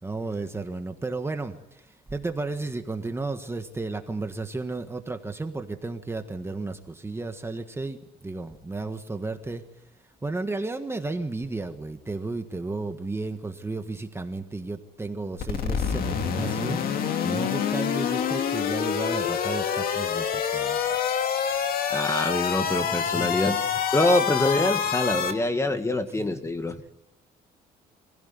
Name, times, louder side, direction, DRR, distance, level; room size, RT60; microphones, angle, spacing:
voice 1, 0.0-9.6 10.2-20.9 23.1-23.3 25.2-25.7, right 3 dB, 15° right, 7 dB, 1.5 m, -33 dB
sound 1, 15.4-25.3, left 7 dB, 60° left, 2.3 m, -27 dB
voice 2, 21.9-23.6 23.9-26.9, left 2 dB, 15° left, 8 dB, 1.9 m, -25 dB
25.5 x 16.0 x 9.6 m, 0.88 s
cardioid pair, 110°, 17 cm